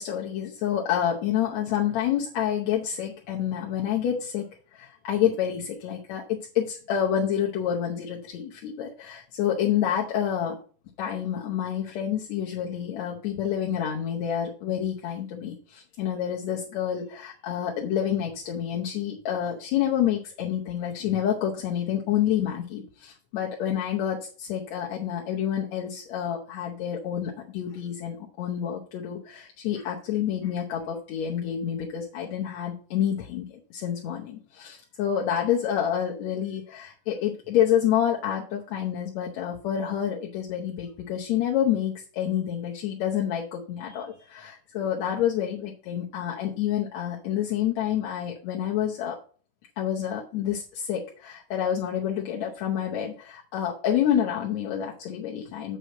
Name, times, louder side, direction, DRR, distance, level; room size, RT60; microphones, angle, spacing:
voice 1, 0.0-10.6 11.0-49.2 49.8-55.8, left 9 dB, 65° left, -1 dB, 2.0 m, -28 dB
7.8 x 4.9 x 6.5 m, 0.42 s
omnidirectional pair, 3.7 m